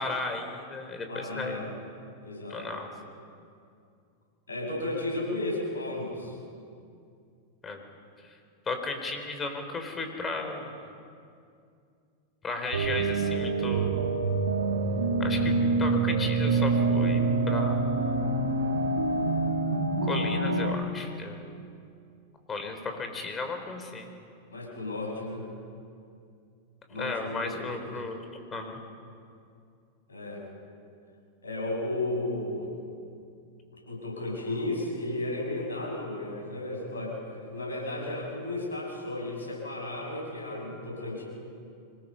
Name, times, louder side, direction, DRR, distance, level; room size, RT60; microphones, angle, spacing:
voice 1, 0.0-1.6 2.5-2.9 7.6-7.8 8.7-10.9 12.4-14.1 15.2-18.0 20.0-21.4 22.5-24.1 27.0-28.2 28.5-28.8, left 3 dB, 20° left, 5 dB, 3.7 m, -35 dB
voice 2, 1.1-1.7 2.2-2.7 4.5-6.3 24.5-25.5 26.9-27.9 30.1-30.4 31.4-32.7 33.9-41.2, left 2 dB, 85° left, -1 dB, 7.4 m, -34 dB
sound 1, 12.7-20.7, right 3 dB, 85° right, 2.2 m, -26 dB
25.5 x 20.5 x 5.6 m, 2.4 s
hypercardioid pair, 95°, 0 cm